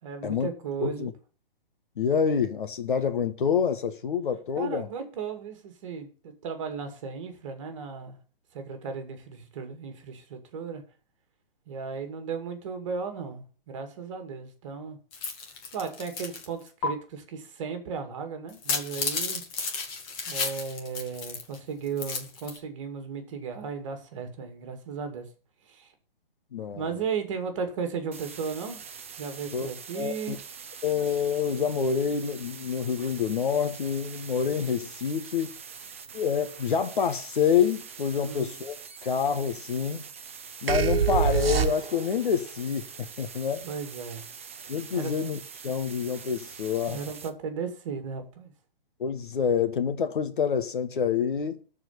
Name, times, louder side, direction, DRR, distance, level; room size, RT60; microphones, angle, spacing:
voice 1, 0.0-1.1 4.6-8.2 8.5-10.8 11.7-15.0 15.7-19.4 20.3-25.3 25.7-25.9 26.7-28.8 29.2-30.4 38.2-38.5 43.6-44.2 44.9-45.1 46.9-48.5, right 5 dB, 35° right, 2.4 m, -35 dB
voice 2, 2.0-4.9 26.5-27.0 29.5-29.7 29.9-30.4 30.8-35.5 36.1-38.8 39.0-40.0 40.6-43.6 44.7-45.4 45.6-47.0 49.0-51.6, left 7 dB, 60° left, 1.7 m, -27 dB
sound 1, 15.1-16.4 16.8-16.9 18.5-21.6 21.9-22.6, left 4 dB, 15° left, 1.1 m, -32 dB
sound 2, 28.1-47.3, right 6 dB, 15° right, 0.5 m, -44 dB
sound 3, 40.7-42.2, right 7 dB, 85° right, 1.3 m, -24 dB
13.0 x 4.8 x 8.7 m
hypercardioid pair, 170°, 29 cm